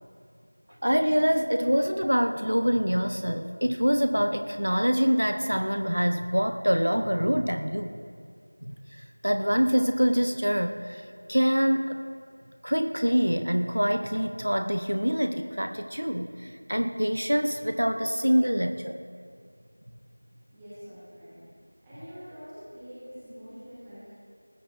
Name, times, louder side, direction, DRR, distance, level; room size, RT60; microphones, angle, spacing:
voice 1, 0.8-7.9 8.7-12.0 12.6-19.0, equal, 75° right, 6 dB, 0.9 m, -25 dB
voice 2, 20.5-21.4 21.8-24.1, equal, 5° right, -16 dB, 1.2 m, -45 dB
19.5 x 15.5 x 2.6 m, 2.2 s
figure-of-eight pair, 180°, 0 cm